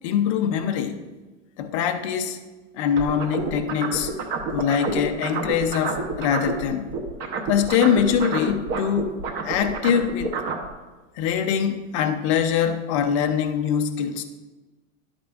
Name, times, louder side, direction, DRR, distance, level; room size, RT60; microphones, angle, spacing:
voice 1, 0.0-1.0 1.6-2.4 2.8-4.1 4.5-6.9 7.5-9.2 9.4-10.3 11.2-14.2, left 8 dB, 25° left, 6 dB, 0.4 m, -23 dB
sound 1, 3.0-6.6 6.9-10.7, right 4 dB, 25° right, 0.7 m, -28 dB
11.0 x 8.6 x 2.3 m, 1.2 s
supercardioid pair, 155°, 39 cm